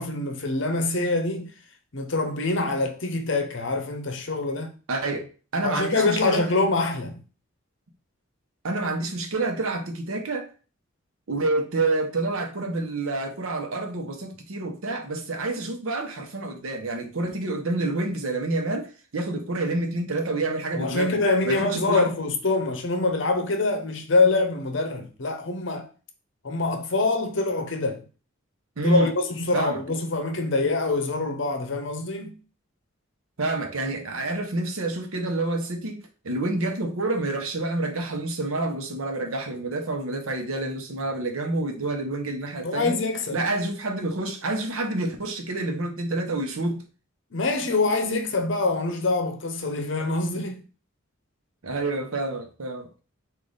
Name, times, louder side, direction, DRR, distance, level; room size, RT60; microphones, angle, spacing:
voice 1, 0.0-1.5 1.9-4.7 5.6-7.2 20.7-25.9 26.4-28.0 28.8-32.4 42.6-43.4 47.3-50.6, left 3 dB, 60° left, 0.7 m, -25 dB
voice 2, 4.9-6.4 8.6-10.5 11.3-22.1 28.8-29.1 29.5-29.8 33.4-43.0 43.3-46.8 51.6-52.9, right 2 dB, 80° right, 0.8 m, -28 dB
5.1 x 2.5 x 3.9 m
head